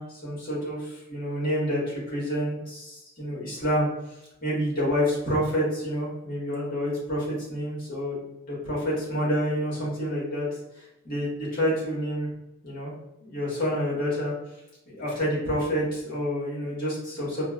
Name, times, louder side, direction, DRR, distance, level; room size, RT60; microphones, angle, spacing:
voice 1, 0.0-3.9 4.4-8.2 8.5-10.5 11.0-12.3 12.6-12.9 13.2-14.3 14.9-17.4, equal, 50° left, -7 dB, 1.4 m, -28 dB
4.2 x 2.0 x 2.3 m, 0.90 s
head